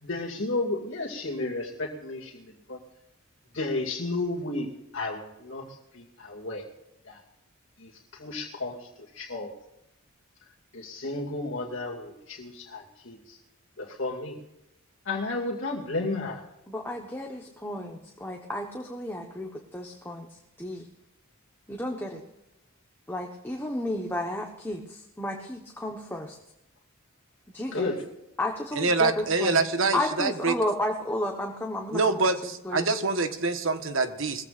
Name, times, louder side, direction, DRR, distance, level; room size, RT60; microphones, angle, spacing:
voice 1, 0.0-2.8 3.5-4.7 4.9-5.6 5.9-6.6 7.1-7.2 7.8-7.9 8.2-8.8 9.2-9.5 10.7-13.4 13.8-14.4 15.1-16.4 27.7-28.0, left 2 dB, 60° left, -2 dB, 2.4 m, -32 dB
voice 2, 16.7-20.3 20.6-20.9 21.7-22.2 23.1-26.4 27.5-27.9 28.4-29.6 29.9-33.0, left 1 dB, 10° left, 1 dB, 1.2 m, -32 dB
voice 3, 28.7-30.5 31.9-34.4, right 3 dB, 65° right, 8 dB, 1.3 m, -25 dB
21.0 x 15.5 x 2.6 m, 0.87 s
head